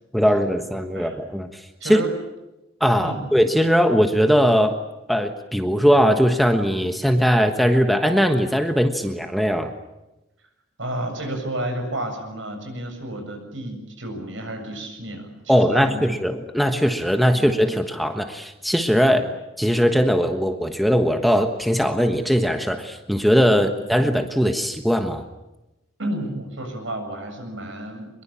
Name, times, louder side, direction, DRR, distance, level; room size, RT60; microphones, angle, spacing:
voice 1, 0.1-1.5 1.8-2.0 2.8-4.8 5.1-9.7 15.5-19.2 19.6-25.2, equal, ahead, 6 dB, 1.3 m, -20 dB
voice 2, 1.8-2.1 3.0-3.2 10.8-16.1 17.3-17.5 19.1-19.3 23.6-23.8 26.0-28.1, right 1 dB, 75° right, 5 dB, 7.4 m, -31 dB
24.0 x 22.0 x 8.7 m, 0.98 s
head